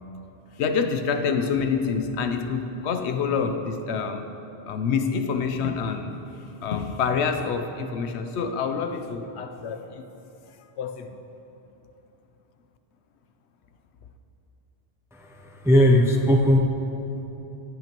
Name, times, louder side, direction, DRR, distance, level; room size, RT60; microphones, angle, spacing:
voice 1, 0.5-4.3 4.7-6.2 6.5-10.0 10.8-11.2, left 5 dB, 75° left, 0.9 m, -27 dB
voice 2, 15.1-16.6, equal, 5° right, 0.4 m, -19 dB
16.5 x 8.9 x 2.9 m
omnidirectional pair, 1.1 m